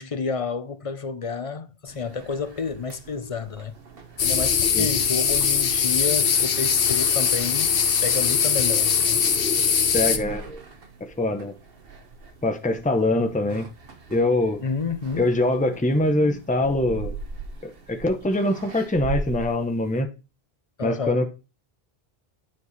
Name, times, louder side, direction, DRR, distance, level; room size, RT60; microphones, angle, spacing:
voice 1, 0.0-3.7 4.2-9.2 14.6-15.3 20.8-21.2, left 5 dB, 40° left, 0.6 m, -30 dB
sound 1, 1.9-20.0, right 4 dB, 65° right, 1.3 m, -41 dB
sound 2, 4.2-10.2, left 7 dB, 65° left, 1.0 m, -21 dB
voice 2, 9.9-10.6 11.0-11.5 12.4-13.7 14.1-14.6 15.1-17.1 17.6-20.1 20.8-21.3, left 2 dB, 10° left, 0.8 m, -23 dB
9.6 x 4.7 x 4.1 m
omnidirectional pair, 1.0 m